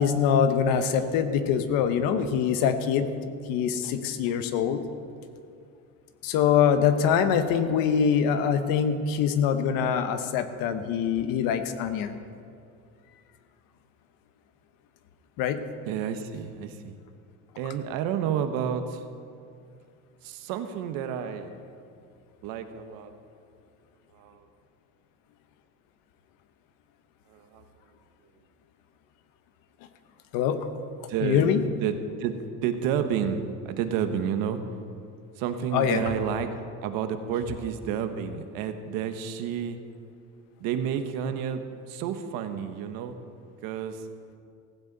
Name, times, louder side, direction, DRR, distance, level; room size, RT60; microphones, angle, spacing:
voice 1, 0.0-3.1 3.5-4.8 6.2-12.1 15.4-15.6 30.3-30.6 31.2-31.6 35.7-36.0, left 7 dB, 75° left, 9 dB, 1.2 m, -24 dB
voice 2, 15.8-17.0 17.6-19.1 20.2-21.5 22.4-23.1 24.1-24.5 27.3-27.6 31.1-31.5 31.8-34.6 35.4-36.5 36.8-39.8 40.6-43.2 43.6-44.1, right 8 dB, 90° right, 8 dB, 1.2 m, -30 dB
16.0 x 15.5 x 4.1 m, 2.4 s
cardioid pair, 175°, 34 cm